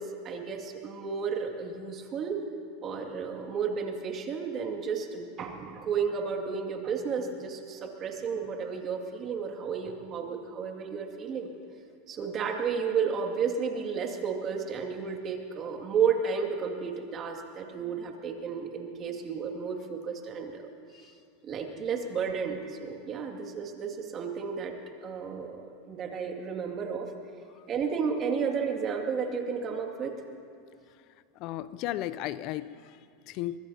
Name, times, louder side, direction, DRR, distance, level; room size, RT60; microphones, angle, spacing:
voice 1, 0.0-2.4 2.8-11.5 12.1-20.7 21.4-24.7 25.0-27.1 27.7-30.1, right 6 dB, 35° right, 2 dB, 2.3 m, -32 dB
voice 2, 31.4-33.6, left 14 dB, 55° left, 16 dB, 0.5 m, -36 dB
24.0 x 21.0 x 2.9 m, 2.4 s
hypercardioid pair, 110°, 0 cm